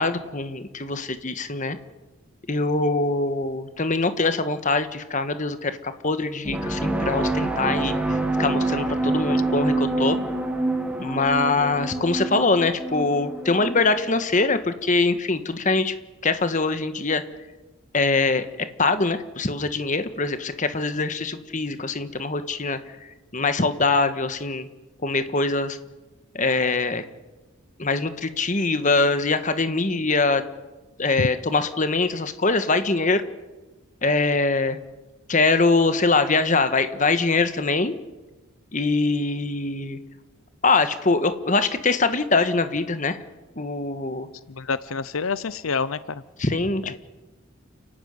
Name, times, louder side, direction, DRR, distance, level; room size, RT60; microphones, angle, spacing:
voice 1, 0.0-1.8 2.5-10.2 11.0-15.9 16.2-17.2 17.9-18.5 18.8-22.8 23.3-24.7 25.0-25.8 26.3-27.0 27.8-30.4 31.0-33.2 34.0-34.8 35.3-37.9 38.7-40.0 40.6-43.2 43.6-44.3 46.4-47.0, left 3 dB, 35° left, 10 dB, 1.5 m, -23 dB
sound 1, 6.4-14.0, right 2 dB, 5° right, 1.8 m, -26 dB
voice 2, 44.5-46.2 46.8-47.0, left 4 dB, 80° left, 16 dB, 0.7 m, -27 dB
29.5 x 12.0 x 9.6 m, 1.1 s
head